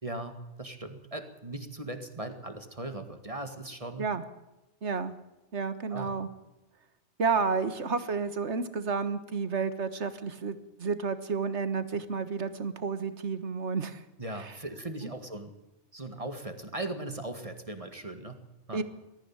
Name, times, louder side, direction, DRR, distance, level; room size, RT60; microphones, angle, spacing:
voice 1, 0.0-4.1 5.9-6.1 14.2-15.5 15.9-18.4 18.7-18.8, right 2 dB, 30° right, 8 dB, 2.0 m, -38 dB
voice 2, 4.8-5.1 5.5-6.3 7.2-14.0 18.7-18.8, right 5 dB, 75° right, 12 dB, 1.7 m, -31 dB
21.5 x 14.5 x 8.8 m, 1.0 s
omnidirectional pair, 1.2 m